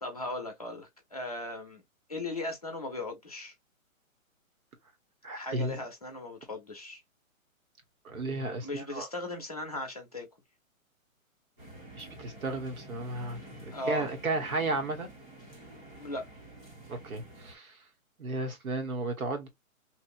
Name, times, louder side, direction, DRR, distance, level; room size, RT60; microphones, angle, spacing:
voice 1, 0.0-1.8 2.1-3.5 5.3-7.0 8.6-10.3 13.7-14.1 16.0-16.3, left 2 dB, 30° left, 0.6 m, -37 dB
voice 2, 5.2-5.8 8.0-9.1 12.0-13.4 13.9-15.1 16.9-17.7 18.2-19.5, right 2 dB, 85° right, 1.5 m, -33 dB
sound 1, 11.6-17.6, right 1 dB, 30° right, 1.5 m, -49 dB
3.1 x 2.6 x 2.5 m
hypercardioid pair, 180°, 42 cm